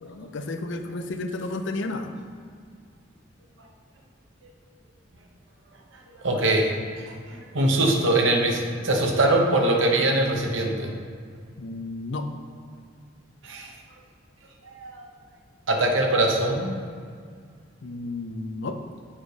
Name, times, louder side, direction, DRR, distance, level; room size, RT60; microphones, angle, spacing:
voice 1, 0.0-2.1 11.6-12.3 17.8-18.8, left 2 dB, 60° left, 6 dB, 0.6 m, -32 dB
voice 2, 6.1-10.9 13.4-13.7 14.7-15.1 15.7-16.8, right 1 dB, 65° right, 2 dB, 1.0 m, -23 dB
7.4 x 5.2 x 4.9 m, 2.1 s
head